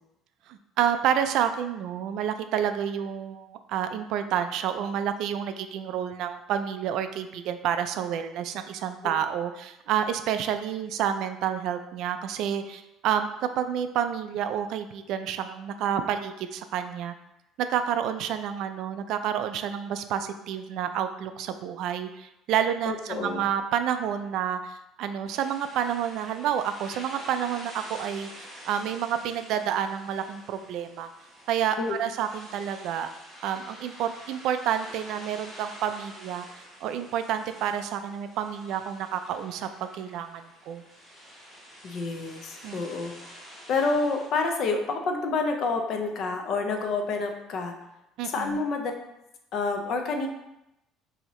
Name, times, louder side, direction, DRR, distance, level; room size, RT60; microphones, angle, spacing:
voice 1, 0.5-17.1 17.6-31.1 31.5-33.1 33.4-36.5 36.8-40.8 42.6-42.8 48.2-48.6, right 9 dB, 55° right, 9 dB, 0.3 m, -29 dB
voice 2, 22.9-23.5 31.8-32.0 41.8-43.1 43.7-47.7 48.2-48.9 49.5-50.3, left 3 dB, 40° left, 4 dB, 0.6 m, -28 dB
sound 1, 25.3-44.3, equal, 5° right, 1.5 m, -47 dB
6.3 x 2.8 x 3.1 m, 0.89 s
cardioid pair, 175°, 0 cm